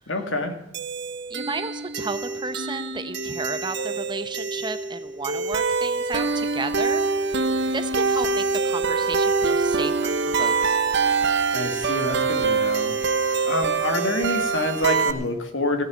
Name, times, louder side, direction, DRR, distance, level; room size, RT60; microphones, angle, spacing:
voice 1, 0.1-0.5 11.5-12.9 13.5-15.8, left 1 dB, 75° left, 6 dB, 2.1 m, -26 dB
sound 1, 0.7-15.1, right 4 dB, 60° right, 1.1 m, -24 dB
voice 2, 1.3-7.4 7.7-10.5 10.8-11.0, right 3 dB, 25° right, 10 dB, 0.9 m, -33 dB
16.0 x 7.5 x 9.3 m, 0.91 s
head